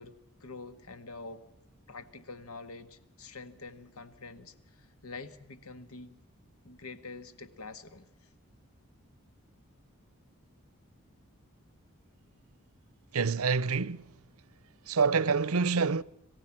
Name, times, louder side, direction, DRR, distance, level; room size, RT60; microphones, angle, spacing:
voice 1, 0.0-1.4 1.9-6.2 6.6-8.3, left 3 dB, 90° left, 1.8 m, -46 dB
voice 2, 13.1-14.1 14.9-16.0, right 5 dB, 85° right, 0.7 m, -27 dB
27.0 x 16.0 x 7.4 m
head